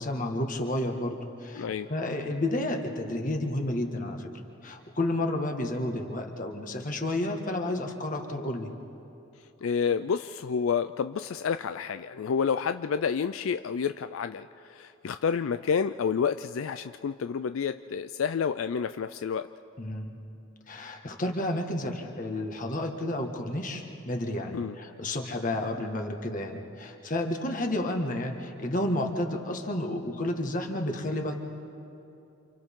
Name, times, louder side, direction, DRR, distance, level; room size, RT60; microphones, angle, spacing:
voice 1, 0.0-4.3 4.6-8.7 19.8-20.1 20.7-31.4, left 1 dB, 40° left, 3 dB, 1.7 m, -31 dB
voice 2, 1.6-1.9 9.6-19.5 24.5-24.7, left 6 dB, 80° left, 10 dB, 0.4 m, -29 dB
29.0 x 27.5 x 3.7 m, 2.9 s
head